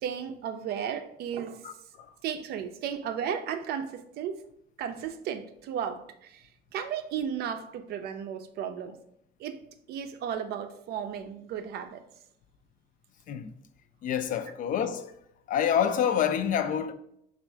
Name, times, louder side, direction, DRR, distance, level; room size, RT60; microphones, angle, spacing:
voice 1, 0.0-1.6 2.2-4.4 4.8-9.0 9.4-9.6 9.9-12.0, right 8 dB, 70° right, 0.4 m, -34 dB
voice 2, 14.0-15.1 15.5-16.9, left 8 dB, 50° left, 0.4 m, -27 dB
3.2 x 2.4 x 4.4 m
cardioid pair, 110°, 17 cm